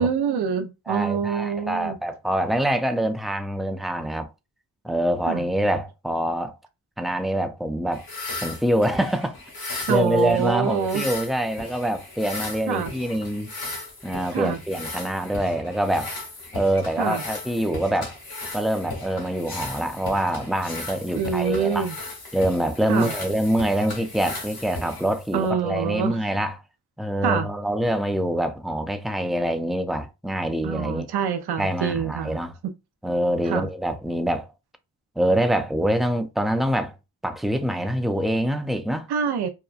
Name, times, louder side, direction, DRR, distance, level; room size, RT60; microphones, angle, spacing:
voice 1, 0.0-2.0 5.3-5.4 9.9-11.1 12.7-12.9 14.3-14.6 17.0-17.2 21.1-22.0 22.9-23.1 25.3-26.2 27.2-27.5 30.6-32.7 33.5-33.7 39.1-39.5, right 7 dB, 80° right, 0.6 m, -25 dB
voice 2, 0.9-4.3 4.8-6.6 7.0-8.1 8.4-9.4 9.7-13.5 14.0-16.1 16.5-18.2 18.5-21.9 22.3-26.6 27.0-31.1 31.6-32.5 33.0-34.5 35.2-37.0 37.2-39.1, right 1 dB, ahead, 0.4 m, -25 dB
sound 1, 7.9-25.5, left 2 dB, 70° left, 1.3 m, -37 dB
2.8 x 2.2 x 2.3 m
cardioid pair, 50°, 38 cm